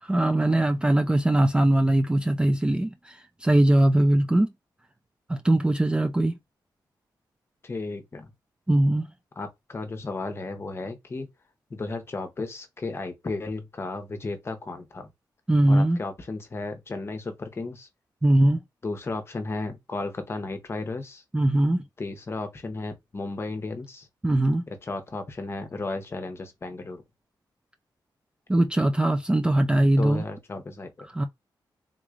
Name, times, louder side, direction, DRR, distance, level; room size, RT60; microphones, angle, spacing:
voice 1, 0.0-4.5 5.3-6.4 8.7-9.1 15.5-16.0 18.2-18.6 21.3-21.8 24.2-24.6 28.5-30.2 31.1-31.2, right 1 dB, 10° right, 0.4 m, -21 dB
voice 2, 7.6-8.3 9.4-11.3 11.7-15.1 15.7-17.9 18.8-21.2 22.0-24.1 24.7-27.0 29.9-31.1, left 3 dB, 35° left, 0.8 m, -34 dB
3.7 x 3.1 x 2.4 m
wide cardioid pair, 135°, 8 cm